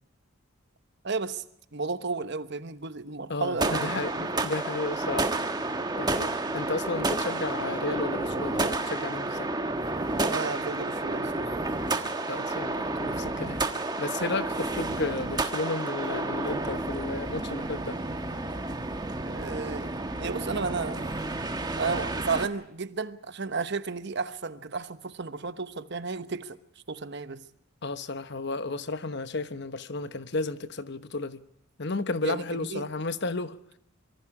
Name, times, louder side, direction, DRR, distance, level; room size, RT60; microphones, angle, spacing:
voice 1, 1.0-1.4 1.7-4.5 10.2-11.5 19.2-21.1 21.8-26.6 26.9-27.5 32.2-32.9, right 4 dB, 50° right, 1.0 m, -33 dB
voice 2, 3.3-5.3 6.0-9.5 12.3-13.6 14.0-18.0 27.8-31.4 31.8-33.6, left 3 dB, 50° left, 1.0 m, -33 dB
sound 1, 3.6-22.5, right 2 dB, 20° right, 1.4 m, -30 dB
25.5 x 24.0 x 4.9 m
head